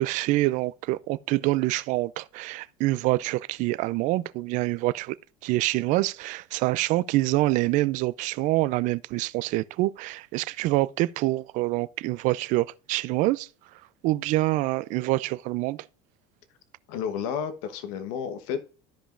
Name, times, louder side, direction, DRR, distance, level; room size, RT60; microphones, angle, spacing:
voice 1, 0.0-5.2 5.4-13.5 14.0-15.8, right 18 dB, 55° right, 0.4 m, -26 dB
voice 2, 16.9-18.7, left 7 dB, 80° left, 1.1 m, -31 dB
14.0 x 5.1 x 2.5 m
cardioid pair, 135°, 16 cm